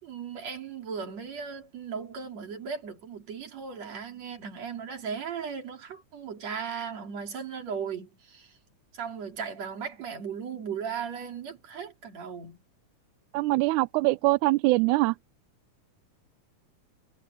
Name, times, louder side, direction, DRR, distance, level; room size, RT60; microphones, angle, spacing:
voice 1, 0.0-8.6 8.9-12.6, right 6 dB, 55° right, 4.3 m, -37 dB
voice 2, 13.3-15.2, right 20 dB, 80° right, 2.0 m, -23 dB
omnidirectional pair, 3.6 m